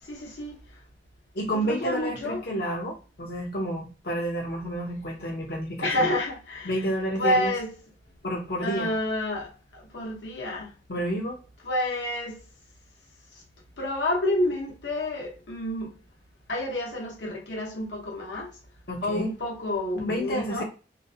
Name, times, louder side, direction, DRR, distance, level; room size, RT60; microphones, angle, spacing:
voice 1, 0.1-0.6 1.5-2.4 5.8-6.7 7.2-7.7 8.6-10.7 11.6-12.4 13.8-15.9 16.5-18.5 19.0-20.6, left 1 dB, 85° left, 0.8 m, -29 dB
voice 2, 1.3-6.1 6.6-7.5 8.2-8.9 10.9-11.4 18.9-19.3 20.1-20.6, right 1 dB, 60° left, 0.5 m, -30 dB
2.4 x 2.0 x 2.6 m
head